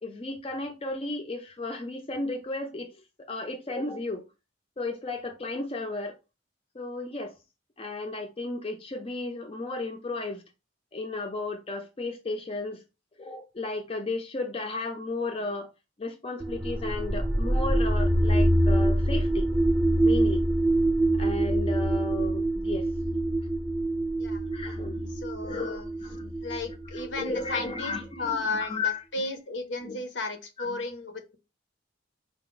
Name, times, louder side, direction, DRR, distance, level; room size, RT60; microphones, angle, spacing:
voice 1, 0.0-4.2 4.8-6.2 6.7-7.3 7.8-10.4 10.9-12.8 13.2-15.7 16.0-19.5 20.0-20.4 21.1-23.2 24.5-25.2 25.4-26.3 26.6-29.3 29.8-30.0 30.6-30.8, left 2 dB, 30° left, 0.5 m, -34 dB
sound 1, 16.4-28.2, right 1 dB, 10° right, 0.6 m, -25 dB
voice 2, 25.2-25.9 26.4-31.4, left 3 dB, 65° left, 0.7 m, -34 dB
4.7 x 2.1 x 3.7 m
head